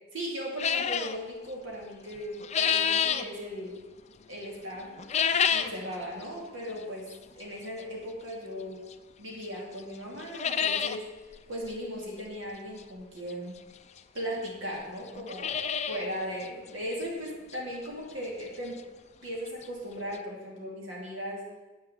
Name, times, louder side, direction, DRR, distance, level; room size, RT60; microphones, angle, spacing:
voice 1, 0.1-3.8 4.3-5.0 5.5-8.8 9.2-11.1 11.5-13.6 14.1-15.6 15.9-18.8 19.2-21.4, equal, 60° right, -3 dB, 2.6 m, -37 dB
sound 1, 0.6-1.2 2.1-3.3 5.0-5.8 6.2-6.3 7.1-7.2 8.9-9.0 9.4-9.5 9.8-9.9 10.2-11.0 11.3-11.4 11.6-11.7 13.3-13.4 14.2-14.3 14.5-14.6 15.1-16.1 16.4-16.5 17.0-17.1 17.5-17.6 19.3-19.4 19.6-19.7 20.1-20.2, left 7 dB, 30° left, 0.4 m, -28 dB
9.5 x 8.2 x 7.1 m, 1.2 s
head